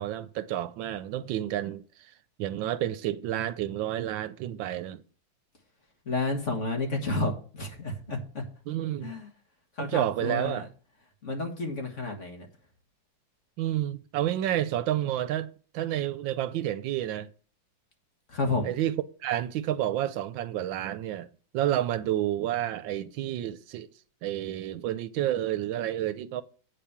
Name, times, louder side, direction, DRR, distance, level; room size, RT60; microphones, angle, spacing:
voice 1, 0.0-2.1 2.4-5.0 8.7-9.2 9.8-10.7 13.6-17.3 18.6-18.9 19.2-21.3 21.5-23.9 24.2-26.4, right 12 dB, 90° right, 1.4 m, -30 dB
voice 2, 6.1-8.4 9.0-9.3 9.8-10.6 11.2-12.5 18.3-18.7, left 3 dB, 40° left, 1.7 m, -31 dB
8.4 x 5.1 x 7.3 m
omnidirectional pair, 2.1 m